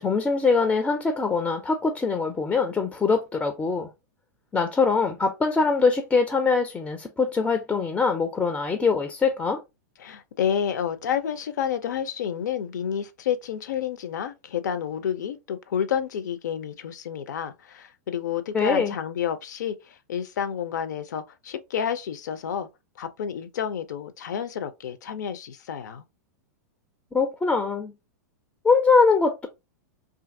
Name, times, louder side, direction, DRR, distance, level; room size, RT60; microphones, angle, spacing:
voice 1, 0.0-3.9 4.5-9.6 18.5-18.9 27.1-27.9 28.6-29.5, left 4 dB, 10° left, 0.3 m, -23 dB
voice 2, 10.0-22.7 23.0-26.0, left 8 dB, 75° left, 0.5 m, -30 dB
2.7 x 2.5 x 2.5 m
hypercardioid pair, 120°, 10 cm